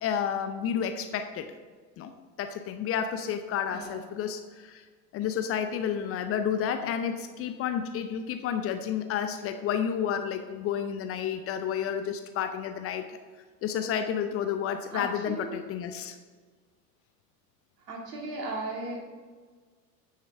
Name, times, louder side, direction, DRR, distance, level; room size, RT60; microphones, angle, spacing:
voice 1, 0.0-1.5 2.0-2.1 2.4-4.8 5.1-13.2 13.6-16.1, left 8 dB, 30° left, 9 dB, 0.6 m, -31 dB
voice 2, 14.9-15.6 17.9-19.0, right 2 dB, 70° right, 0 dB, 2.3 m, -36 dB
10.0 x 6.6 x 3.5 m, 1.5 s
figure-of-eight pair, 80°, 49 cm